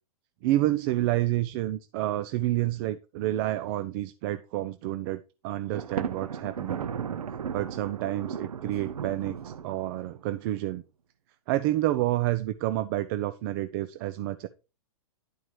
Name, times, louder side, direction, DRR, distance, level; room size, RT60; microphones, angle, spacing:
voice 1, 0.4-6.9 7.5-10.8 11.5-14.5, right 15 dB, 40° right, 0.5 m, -29 dB
Thunder, 5.7-10.3, right 7 dB, 90° right, 0.9 m, -36 dB
11.0 x 4.7 x 4.7 m
hypercardioid pair, 140°, 19 cm